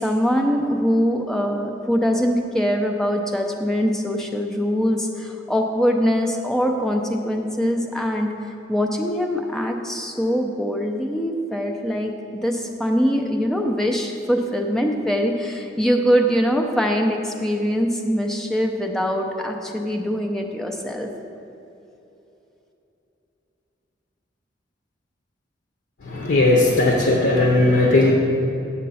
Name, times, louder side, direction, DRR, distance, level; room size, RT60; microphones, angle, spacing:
voice 1, 0.0-8.3 8.7-12.1 12.4-21.1, equal, 5° left, 1 dB, 0.5 m, -22 dB
voice 2, 26.1-28.1, left 2 dB, 80° left, -1 dB, 0.8 m, -17 dB
7.4 x 6.6 x 4.1 m, 2.9 s
head